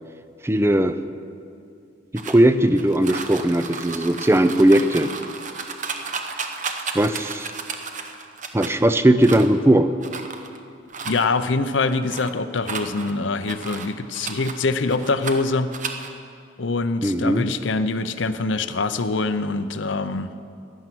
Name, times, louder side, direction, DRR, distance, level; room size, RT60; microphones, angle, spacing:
voice 1, 0.4-1.0 2.1-5.1 6.9-7.5 8.5-9.9 17.0-17.5, right 1 dB, 15° right, 11 dB, 0.4 m, -18 dB
sound 1, 2.2-8.7 9.2-9.6 10.0-10.6 10.9-11.2 11.7-12.3 12.6-14.5 14.9-15.4 15.7-16.1, right 5 dB, 40° right, 0.9 m, -33 dB
voice 2, 11.0-15.7 16.6-20.3, left 3 dB, 70° left, 11 dB, 0.7 m, -24 dB
15.0 x 11.0 x 6.1 m, 2.4 s
head